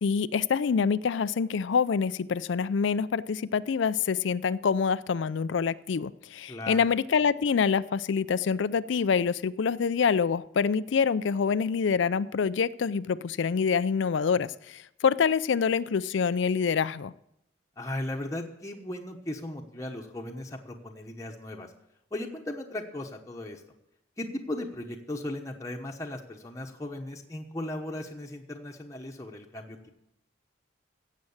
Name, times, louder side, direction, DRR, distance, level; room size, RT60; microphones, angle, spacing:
voice 1, 0.0-17.1, left 6 dB, 70° left, 17 dB, 0.4 m, -26 dB
voice 2, 6.5-6.8 17.8-21.7 22.1-23.6 24.2-29.9, left 1 dB, 15° left, 1 dB, 1.0 m, -37 dB
16.0 x 7.5 x 7.2 m, 0.82 s
head